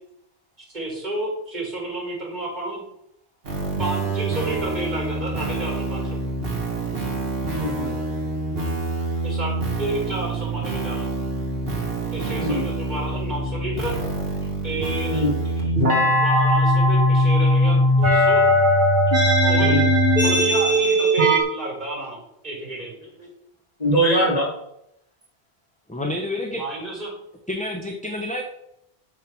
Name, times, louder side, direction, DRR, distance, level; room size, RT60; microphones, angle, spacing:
voice 1, 0.7-2.8 3.8-6.2 9.2-11.1 12.1-13.9 14.6-15.1 15.9-18.5 19.4-19.8 20.2-22.2 22.4-23.0 26.5-27.1, right 1 dB, 45° right, -3 dB, 4.8 m, -31 dB
sound 1, 3.5-21.4, equal, 65° right, 2.5 m, -22 dB
voice 2, 7.5-8.0 12.4-12.7 15.1-15.7 19.6-19.9 23.8-24.5, right 1 dB, 40° left, -4 dB, 3.1 m, -23 dB
voice 3, 25.9-26.6 27.5-28.4, left 1 dB, 5° left, 2 dB, 1.0 m, -28 dB
8.5 x 6.6 x 6.2 m, 0.80 s
omnidirectional pair, 1.1 m